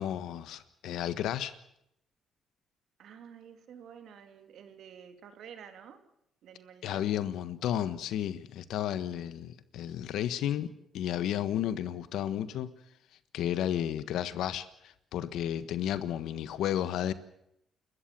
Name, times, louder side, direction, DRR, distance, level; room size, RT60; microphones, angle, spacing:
voice 1, 0.0-1.5 6.8-12.7 13.3-17.1, left 11 dB, 85° left, 1.4 m, -32 dB
voice 2, 3.0-6.0 6.4-7.1, right 8 dB, 75° right, 2.9 m, -50 dB
29.5 x 13.5 x 7.6 m
cardioid pair, 90°, 0 cm